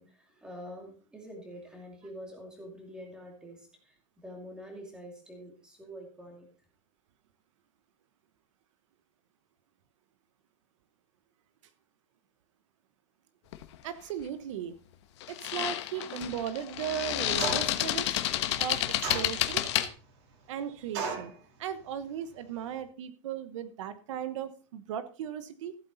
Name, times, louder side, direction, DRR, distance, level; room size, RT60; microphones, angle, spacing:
voice 1, 0.0-6.5, equal, 5° right, 1 dB, 2.7 m, -46 dB
sound 1, 13.5-13.8 15.2-19.9, left 13 dB, 60° left, 1.2 m, -30 dB
voice 2, 13.8-14.8 15.3-18.2 18.6-19.6 20.5-21.3 21.6-25.7, right 9 dB, 70° right, 11 dB, 1.1 m, -37 dB
sound 2, 17.4-17.9 19.0-19.7 20.9-21.4, right 5 dB, 55° right, 3.5 m, -34 dB
15.0 x 8.4 x 4.0 m, 0.37 s
supercardioid pair, 175°, 16 cm